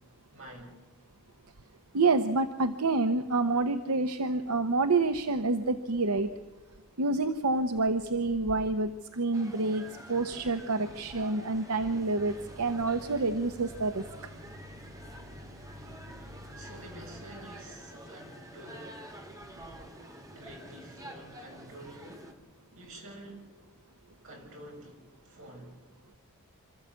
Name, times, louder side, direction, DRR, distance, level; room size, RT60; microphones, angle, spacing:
voice 1, 0.3-0.8 14.2-14.3 16.6-19.1 20.3-22.3 22.7-23.5 24.2-25.7, right 1 dB, 60° right, 0 dB, 6.4 m, -48 dB
voice 2, 1.9-6.3 7.0-14.0, right 3 dB, 85° right, 9 dB, 0.9 m, -28 dB
sound 1, 9.3-22.3, right 1 dB, 15° right, 2.0 m, -48 dB
sound 2, 11.4-18.0, left 1 dB, 45° right, 2.5 m, -50 dB
26.5 x 14.0 x 8.3 m, 1.2 s
head